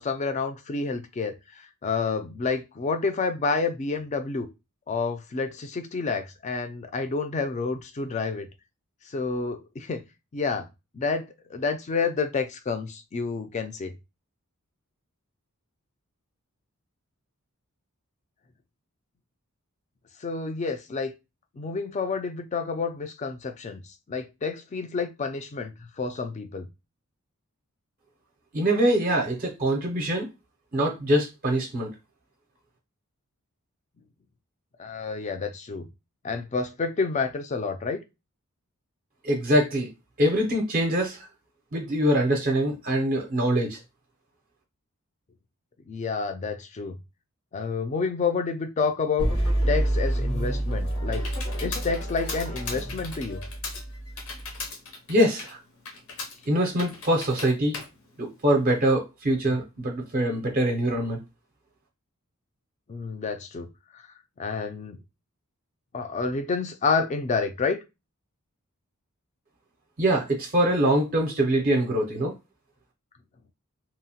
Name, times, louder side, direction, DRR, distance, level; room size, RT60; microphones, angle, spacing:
voice 1, 0.0-4.5 4.9-8.5 9.1-10.0 10.3-10.7 10.9-13.9 20.2-21.1 21.6-23.8 24.1-26.7 34.8-35.9 36.2-38.0 45.9-47.0 47.5-49.3 49.7-51.3 51.6-53.4 62.9-63.7 63.9-64.0 64.4-65.0 65.9-67.8, left 4 dB, 30° left, 0.3 m, -29 dB
voice 2, 28.5-30.3 30.7-31.9 39.2-39.9 40.2-41.3 41.7-43.8 55.1-55.6 56.5-57.8 58.2-61.2 70.0-72.3, right 1 dB, 40° right, 0.5 m, -24 dB
sound 1, 49.2-54.7, right 1 dB, 85° left, 1.4 m, -28 dB
Computer keyboard, 50.3-58.9, left 4 dB, 65° left, 0.7 m, -40 dB
2.8 x 2.1 x 2.7 m
head